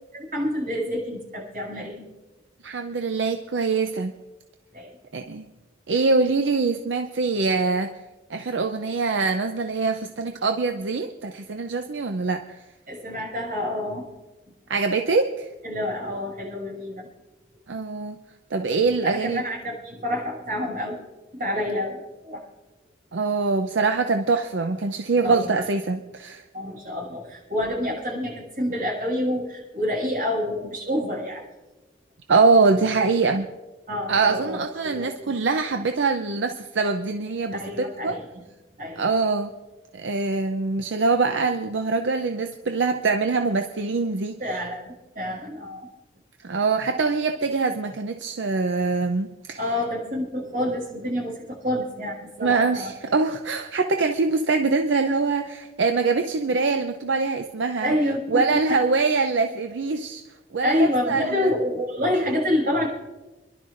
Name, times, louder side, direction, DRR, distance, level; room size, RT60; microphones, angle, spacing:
voice 1, 0.1-2.0 4.7-5.0 12.9-14.1 15.6-17.1 18.8-21.0 21.3-22.4 25.2-25.5 26.5-31.4 33.9-34.6 34.8-35.3 37.5-38.2 38.8-39.1 44.4-45.9 49.6-52.9 57.8-58.4 58.7-58.8 60.6-62.9, left 1 dB, 50° right, -3 dB, 6.3 m, -28 dB
voice 2, 2.6-4.1 5.1-5.5 5.9-7.9 8.3-12.4 14.7-15.5 17.7-18.2 18.5-19.4 23.1-26.4 32.3-33.5 34.1-38.2 39.0-39.5 39.9-44.4 46.4-49.6 52.4-57.9 58.3-60.2 60.5-61.5, right 4 dB, 75° right, 6 dB, 0.6 m, -23 dB
30.0 x 11.5 x 2.6 m, 1.1 s
head